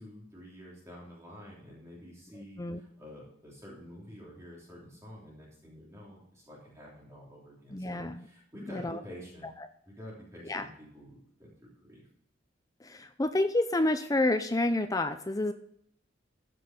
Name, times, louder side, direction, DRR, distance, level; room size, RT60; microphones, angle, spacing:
voice 1, 0.0-9.5 9.9-12.1, equal, 15° right, -5 dB, 3.1 m, -49 dB
voice 2, 7.7-8.2 8.7-9.0 9.6-9.7 10.5-10.7 12.8-15.5, left 2 dB, 15° left, 9 dB, 0.5 m, -29 dB
14.0 x 6.1 x 5.3 m, 0.70 s
head